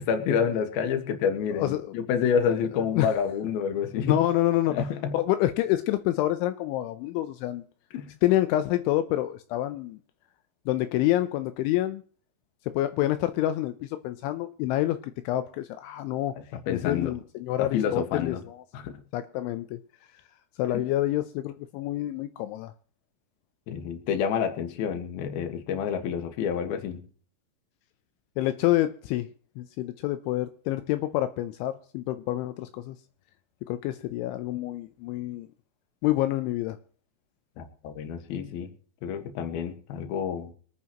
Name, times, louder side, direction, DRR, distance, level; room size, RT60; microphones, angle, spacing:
voice 1, 0.0-4.2 4.7-5.2 7.9-8.1 16.7-17.1 17.6-18.4 18.7-19.0 20.7-20.8 23.7-27.0 37.6-38.7 39.0-40.5, left 7 dB, 65° left, 3.0 m, -28 dB
voice 2, 4.0-4.8 5.1-7.6 8.2-10.0 10.7-12.0 12.7-16.4 16.7-18.6 19.1-19.8 20.6-22.7 28.4-29.3 29.6-33.0 33.7-35.5 36.0-36.8, left 14 dB, 80° left, 3.0 m, -27 dB
25.5 x 9.4 x 3.0 m
omnidirectional pair, 5.5 m